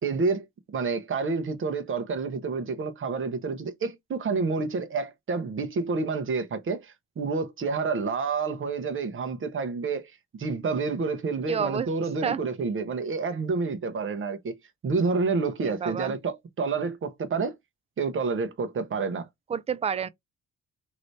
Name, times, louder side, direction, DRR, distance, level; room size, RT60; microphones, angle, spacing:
voice 1, 0.0-10.1 10.4-14.6 14.8-17.6 18.0-19.3, right 4 dB, 40° right, 1.0 m, -29 dB
voice 2, 11.5-11.9 12.2-12.4 15.6-16.2 19.5-20.1, right 7 dB, 20° right, 0.4 m, -29 dB
2.9 x 2.7 x 3.2 m
cardioid pair, 90°, 30 cm